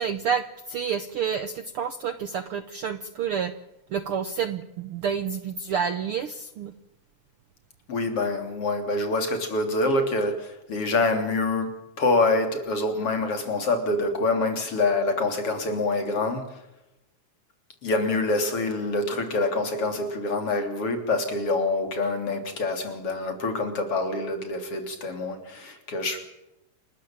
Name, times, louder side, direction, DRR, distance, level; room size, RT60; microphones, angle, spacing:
voice 1, 0.0-3.5 3.9-6.7, right 7 dB, 65° right, 11 dB, 1.4 m, -29 dB
voice 2, 7.9-16.6 17.8-26.3, left 2 dB, 50° left, 6 dB, 4.0 m, -26 dB
28.5 x 13.5 x 8.8 m, 0.90 s
omnidirectional pair, 3.5 m